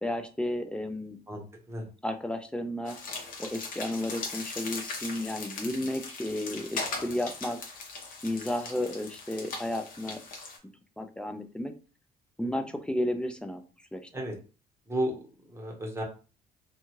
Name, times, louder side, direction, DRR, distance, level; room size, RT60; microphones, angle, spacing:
voice 1, 0.0-1.2 2.0-3.0 3.4-7.6 8.2-10.2 11.0-11.7 12.4-13.6 13.9-14.1, left 1 dB, 5° left, 7 dB, 0.4 m, -33 dB
voice 2, 1.3-1.8 14.1-14.3 14.9-15.2 15.5-16.0, right 1 dB, 15° right, 0 dB, 1.0 m, -33 dB
sound 1, 2.9-10.6, left 3 dB, 55° left, 0.9 m, -39 dB
2.7 x 2.3 x 3.0 m, 0.35 s
cardioid pair, 110°, 17 cm